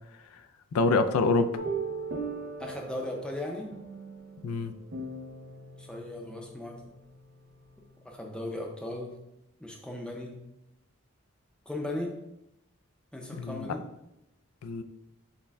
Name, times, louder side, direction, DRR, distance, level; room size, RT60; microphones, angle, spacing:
voice 1, 0.7-1.5 4.4-4.7 13.3-13.7 14.6-14.8, left 3 dB, 85° left, 9 dB, 0.4 m, -26 dB
sound 1, 1.6-8.1, right 4 dB, 65° right, 0.6 m, -40 dB
voice 2, 2.6-3.7 5.8-6.8 8.0-9.1 9.6-10.4 11.7-12.1 13.1-13.8, left 1 dB, 5° left, 0 dB, 0.5 m, -37 dB
6.3 x 2.2 x 3.5 m, 0.88 s
head